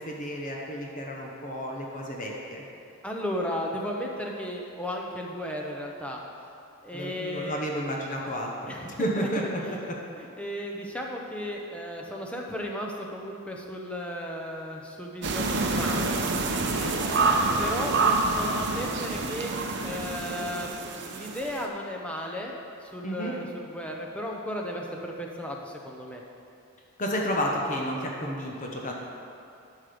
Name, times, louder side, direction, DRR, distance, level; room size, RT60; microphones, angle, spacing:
voice 1, 0.0-2.6 6.9-9.8 16.7-17.0 23.0-23.4 27.0-28.9, equal, 35° left, -1 dB, 1.0 m, -31 dB
voice 2, 3.0-6.2 6.8-7.7 8.7-9.3 9.6-9.8 10.2-16.1 17.0-19.6 19.8-20.8 21.1-22.5 22.8-26.2, equal, 5° left, -1 dB, 0.9 m, -35 dB
sound 1, 15.2-21.6, right 3 dB, 50° right, 0.8 m, -27 dB
11.5 x 6.4 x 5.1 m, 2.6 s
head